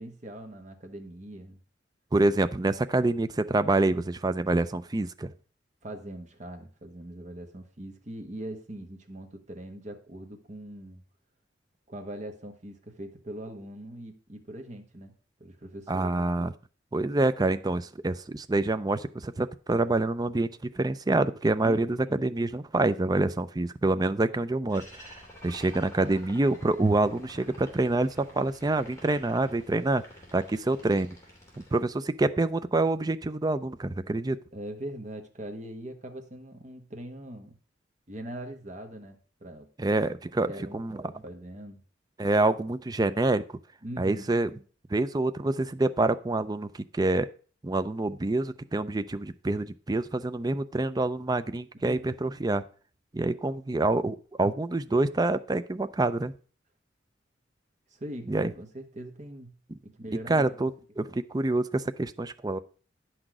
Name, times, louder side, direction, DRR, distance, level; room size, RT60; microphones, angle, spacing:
voice 1, 0.0-1.6 5.8-11.1 11.9-15.1 15.4-16.2 21.6-21.9 34.5-37.6 38.1-39.7 40.5-41.8 43.8-44.3 51.8-52.1 57.9-59.6 59.8-60.6 61.1-61.2, right 1 dB, 40° right, 4 dB, 1.5 m, -41 dB
voice 2, 2.1-5.3 15.9-16.5 16.9-20.5 20.8-30.0 30.3-31.2 31.7-34.4 39.8-40.5 40.7-41.0 42.2-43.4 44.0-44.5 44.9-47.3 47.6-52.6 53.1-56.3 58.3-58.5 60.3-60.7 61.0-62.6, right 2 dB, 20° right, 12 dB, 0.4 m, -26 dB
sound 1, 24.7-31.8, left 1 dB, 15° left, 2.8 m, -50 dB
10.0 x 6.1 x 4.9 m, 0.39 s
head